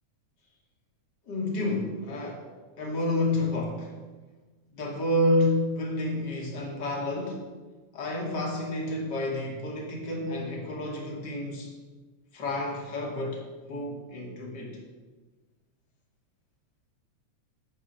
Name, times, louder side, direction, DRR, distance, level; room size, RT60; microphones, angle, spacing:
voice 1, 1.3-2.4 2.8-3.9 4.7-7.4 7.9-11.7 12.3-13.4 13.7-14.8, left 1 dB, 35° left, -1 dB, 2.8 m, -29 dB
11.5 x 8.4 x 6.4 m, 1.3 s
omnidirectional pair, 3.5 m